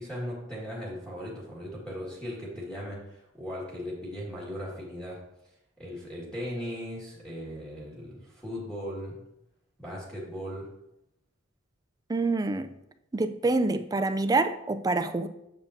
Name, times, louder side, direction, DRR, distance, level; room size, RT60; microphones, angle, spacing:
voice 1, 0.0-5.2 5.8-9.2 9.8-10.7, equal, 5° left, -6 dB, 1.8 m, -38 dB
voice 2, 12.1-12.7 13.1-15.3, right 3 dB, 20° right, 10 dB, 0.3 m, -26 dB
7.0 x 6.7 x 2.7 m, 0.84 s
head